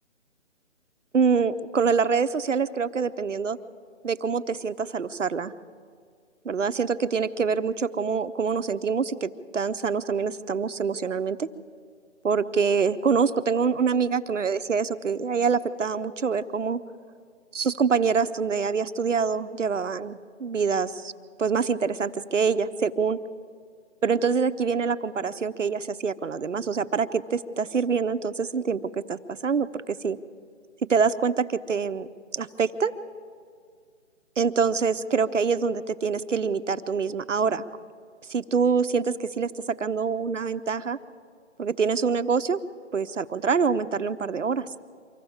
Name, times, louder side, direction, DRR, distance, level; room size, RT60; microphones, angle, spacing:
voice 1, 1.1-3.6 4.0-5.5 6.4-11.5 12.2-16.8 17.5-21.1 21.4-23.2 24.0-30.2 30.9-32.1 32.3-32.9 34.4-37.6 38.3-41.0 41.6-42.6 42.9-44.6, right 5 dB, 70° right, 12 dB, 1.0 m, -25 dB
24.5 x 15.5 x 7.2 m, 2.1 s
figure-of-eight pair, 150°, 38 cm